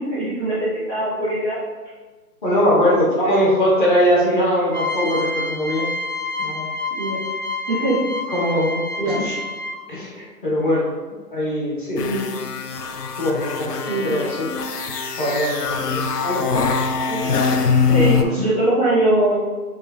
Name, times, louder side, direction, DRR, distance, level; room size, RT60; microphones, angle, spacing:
voice 1, 0.0-1.6 2.7-3.2 7.0-7.2 7.7-8.1 9.0-9.2 11.9-12.3 13.9-14.1 17.1-17.2 17.8-19.4, right 1 dB, 5° left, -15 dB, 0.9 m, -22 dB
voice 2, 2.4-5.9 6.4-6.7 8.3-9.3 9.9-10.9 11.3-12.0 13.2-14.5 15.2-16.7 17.9-18.4, equal, 30° left, -6 dB, 1.1 m, -21 dB
sound 1, 4.7-10.0, left 2 dB, 30° right, 0.5 m, -28 dB
sound 2, 12.0-18.2, left 5 dB, 70° left, 0.6 m, -23 dB
6.3 x 2.4 x 3.4 m, 1.3 s
hypercardioid pair, 160°, 49 cm